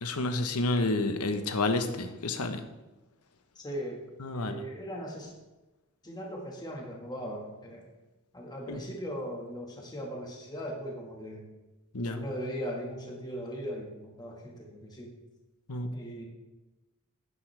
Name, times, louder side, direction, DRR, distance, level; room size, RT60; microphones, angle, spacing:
voice 1, 0.0-2.6 4.2-4.5 8.7-8.8 11.9-12.2 15.7-15.9, left 2 dB, 90° left, 8 dB, 1.0 m, -29 dB
voice 2, 3.6-4.0 4.3-5.3 6.0-7.9 8.3-11.5 12.1-15.1 15.9-16.2, equal, 20° left, -1 dB, 1.7 m, -39 dB
11.0 x 9.7 x 3.4 m, 1.1 s
head